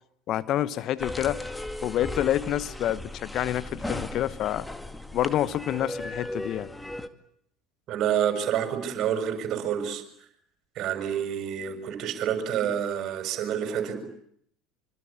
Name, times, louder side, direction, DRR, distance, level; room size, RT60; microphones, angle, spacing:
voice 1, 0.3-1.4 1.8-4.7 5.1-6.7, left 12 dB, 50° left, 1.0 m, -28 dB
sound 1, 1.0-7.1, left 1 dB, 5° left, 2.1 m, -36 dB
voice 2, 7.9-10.0 10.7-14.0, right 9 dB, 50° right, 6.7 m, -28 dB
25.5 x 25.0 x 8.7 m
hypercardioid pair, 75°, 0 cm